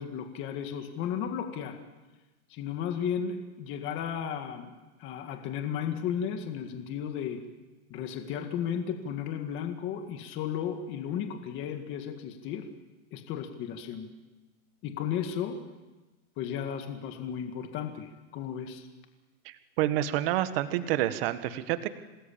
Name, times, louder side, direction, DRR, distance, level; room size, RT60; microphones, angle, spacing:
voice 1, 0.0-1.8 2.5-4.7 5.0-7.4 7.9-12.7 13.1-14.1 14.8-15.6 16.4-18.9, left 8 dB, 25° left, 6 dB, 1.9 m, -34 dB
voice 2, 19.5-21.9, right 13 dB, 40° right, 11 dB, 1.6 m, -28 dB
27.0 x 20.0 x 8.7 m, 1.2 s
supercardioid pair, 165°, 45 cm